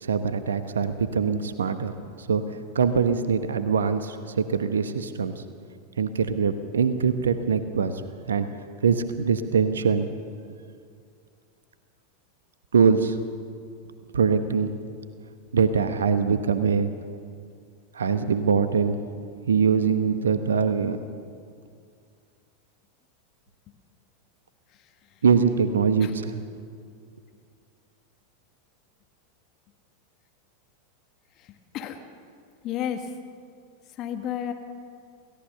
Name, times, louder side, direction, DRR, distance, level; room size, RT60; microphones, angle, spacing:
voice 1, 0.0-1.9 2.3-2.4 2.7-5.4 6.0-8.0 8.3-8.5 8.8-10.1 12.7-13.2 14.1-14.7 15.5-16.9 17.9-19.0 19.5-21.0 25.2-26.4, right 6 dB, 70° right, 10 dB, 1.1 m, -23 dB
voice 2, 31.4-32.0 32.6-33.1 34.0-34.5, left 10 dB, 40° left, 6 dB, 1.8 m, -32 dB
28.5 x 17.0 x 6.8 m, 2.3 s
figure-of-eight pair, 85°, 0 cm